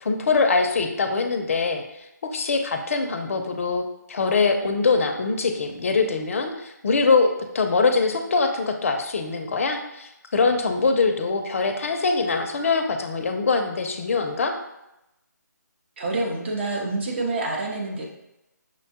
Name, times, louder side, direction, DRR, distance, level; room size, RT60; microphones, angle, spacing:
voice 1, 0.0-1.8 2.3-7.3 7.5-14.5, left 4 dB, 45° left, 5 dB, 0.5 m, -23 dB
voice 2, 16.0-18.1, right 2 dB, 35° right, -1 dB, 0.7 m, -27 dB
6.1 x 2.2 x 2.8 m, 0.89 s
figure-of-eight pair, 160°, 10 cm